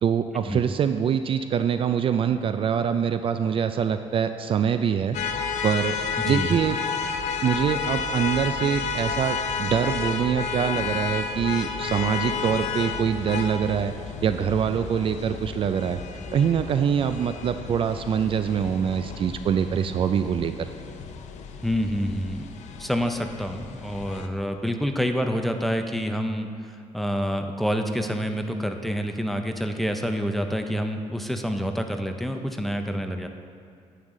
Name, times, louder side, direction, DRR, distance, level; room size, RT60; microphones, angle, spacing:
voice 1, 0.0-5.2 5.6-6.0 6.2-6.8 7.4-13.9 14.2-16.0 16.3-20.7, right 8 dB, 45° right, 9 dB, 0.4 m, -24 dB
sound 1, 5.1-24.3, left 5 dB, 70° left, 0.7 m, -32 dB
voice 2, 6.2-6.5 21.6-22.5 22.8-26.5 26.9-33.3, equal, ahead, 5 dB, 0.6 m, -27 dB
9.8 x 9.0 x 3.8 m, 2.3 s
cardioid pair, 120°, 13 cm